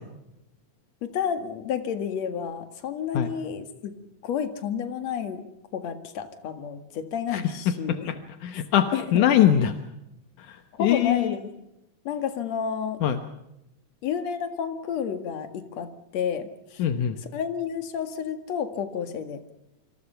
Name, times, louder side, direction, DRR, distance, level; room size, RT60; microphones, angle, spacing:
voice 1, 1.0-3.9 4.2-5.4 5.7-8.1 8.5-8.6 8.9-9.5 10.7-11.5 12.0-13.0 14.0-16.8 17.2-19.4, left 7 dB, 60° left, 8 dB, 2.9 m, -31 dB
voice 2, 7.9-9.7 10.5-11.3 13.0-13.2 16.8-17.2, left 10 dB, 75° left, 8 dB, 2.6 m, -23 dB
27.0 x 26.5 x 5.8 m, 0.87 s
omnidirectional pair, 3.7 m